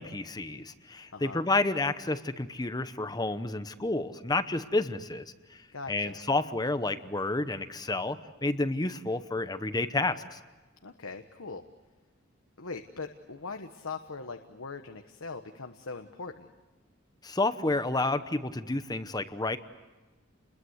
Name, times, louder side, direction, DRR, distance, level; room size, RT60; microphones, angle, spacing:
voice 1, 0.0-5.6 5.9-10.4 17.2-19.6, left 2 dB, 20° left, 11 dB, 0.9 m, -30 dB
voice 2, 1.1-1.5 5.7-6.2 10.8-11.6 12.6-16.5, left 4 dB, 85° left, 6 dB, 1.2 m, -41 dB
30.0 x 21.5 x 8.1 m, 1.2 s
head